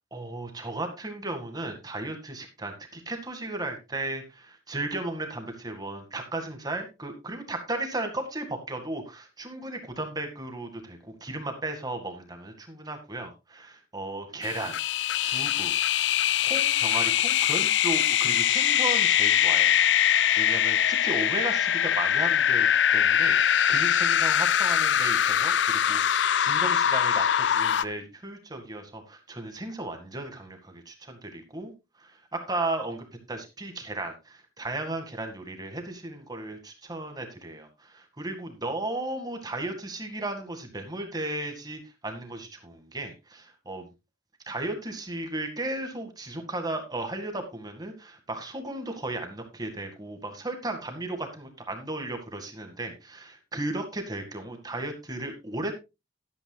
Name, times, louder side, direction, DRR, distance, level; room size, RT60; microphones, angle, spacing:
voice 1, 0.1-14.8 15.2-15.7 16.4-31.7 32.0-43.9 44.5-55.7, right 2 dB, 20° right, 5 dB, 2.0 m, -35 dB
sound 1, 14.4-27.8, left 9 dB, 75° left, 0.4 m, -23 dB
12.5 x 12.0 x 2.3 m, 0.25 s
head